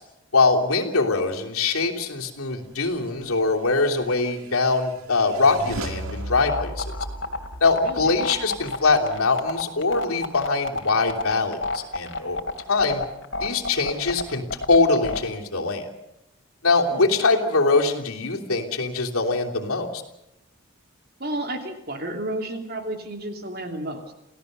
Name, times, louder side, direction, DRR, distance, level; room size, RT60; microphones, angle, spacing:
voice 1, 0.3-6.9 7.6-12.4 12.7-13.0 13.4-15.9 16.6-20.0, left 3 dB, 85° left, -1 dB, 3.2 m, -22 dB
sound 1, 3.6-9.3, right 1 dB, 80° right, 1.7 m, -37 dB
sound 2, 6.4-15.2, left 3 dB, 55° left, 2.7 m, -29 dB
voice 2, 7.8-8.2 16.8-17.1 21.2-24.1, right 1 dB, 45° right, 5 dB, 3.0 m, -32 dB
29.0 x 17.0 x 6.8 m, 0.88 s
head